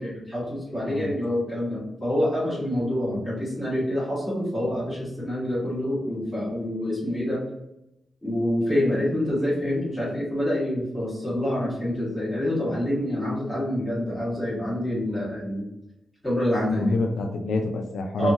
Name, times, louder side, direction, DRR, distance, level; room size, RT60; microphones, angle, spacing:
voice 1, 0.0-7.4 8.2-15.7 16.2-16.9 18.2-18.3, left 1 dB, 10° left, -8 dB, 1.4 m, -27 dB
voice 2, 16.7-18.3, left 2 dB, 90° left, 4 dB, 0.3 m, -27 dB
3.0 x 2.2 x 2.5 m, 0.88 s
wide cardioid pair, 160°, 0 cm